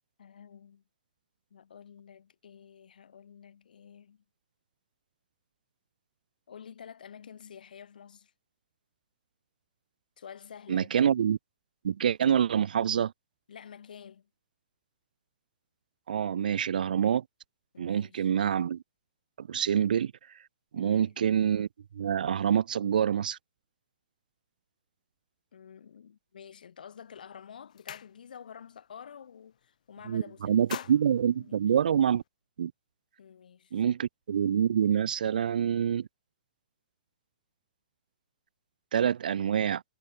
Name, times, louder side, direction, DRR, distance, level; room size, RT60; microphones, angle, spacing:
voice 1, 0.2-0.8 1.5-4.2 6.5-8.3 10.2-10.9 13.5-14.3 17.7-18.3 20.7-21.2 25.5-30.6 31.3-31.7 33.2-33.7, left 7 dB, 75° left, 6.0 m, -49 dB
voice 2, 10.7-11.4 11.8-13.1 16.1-17.2 17.8-18.8 19.4-20.1 20.7-21.7 21.9-23.4 30.1-32.2 32.6-32.7 33.7-36.1 38.9-39.8, right 8 dB, 75° right, 0.4 m, -26 dB
sound 1, 26.9-27.1 27.4-28.6 28.9-29.2 29.5-30.1 30.4-32.3, left 10 dB, 60° left, 6.9 m, -45 dB
hypercardioid pair, 160°, 5 cm